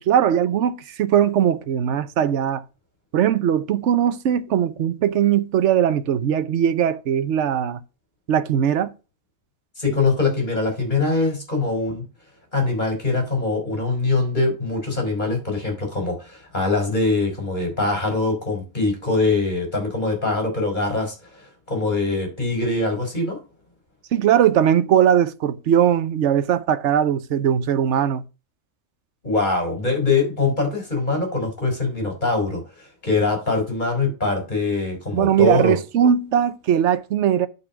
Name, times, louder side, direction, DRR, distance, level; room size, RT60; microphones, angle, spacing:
voice 1, 0.0-2.6 3.1-7.8 8.3-8.9 24.1-28.2 35.1-37.5, right 9 dB, 65° right, 1.0 m, -20 dB
voice 2, 9.8-12.0 12.5-23.4 29.2-35.8, left 3 dB, 35° left, 4.1 m, -23 dB
8.6 x 4.7 x 5.8 m
omnidirectional pair, 1.4 m